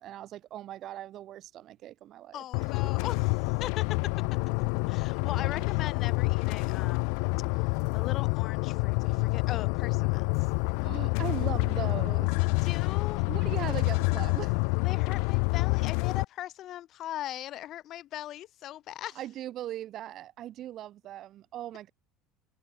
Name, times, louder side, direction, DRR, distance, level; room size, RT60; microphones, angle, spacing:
voice 1, 0.0-2.4 5.3-5.6 7.4-7.6 10.8-12.3 13.3-14.5 19.1-21.9, right 13 dB, 50° right, 3.0 m, -39 dB
voice 2, 2.3-4.1 4.9-7.1 7.5-10.3 12.4-13.2 13.6-13.7 14.8-19.2, left 13 dB, 50° left, 1.2 m, -40 dB
sound 1, 2.5-16.2, left 40 dB or more, 70° left, 0.5 m, -28 dB
supercardioid pair, 90°, 0 cm